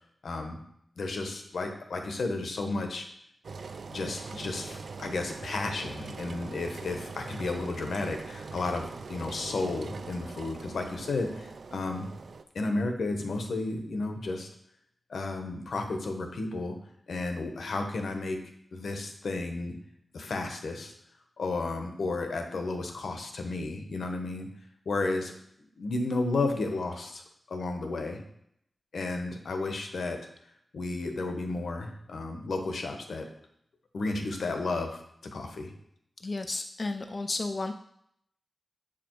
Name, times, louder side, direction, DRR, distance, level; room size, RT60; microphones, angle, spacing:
voice 1, 0.2-0.6 1.0-3.1 3.9-12.1 12.5-14.5 15.1-16.7 17.1-19.8 20.1-20.9 21.4-24.5 24.8-25.3 25.8-27.2 27.5-28.2 28.9-30.2 30.7-33.3 33.9-35.7, left 3 dB, 85° left, 4 dB, 1.1 m, -33 dB
Engine, 3.4-12.4, right 4 dB, 70° right, 0.4 m, -42 dB
voice 2, 36.2-37.7, left 3 dB, 40° left, 7 dB, 0.4 m, -32 dB
7.1 x 5.0 x 4.5 m, 0.72 s
wide cardioid pair, 120°, 0 cm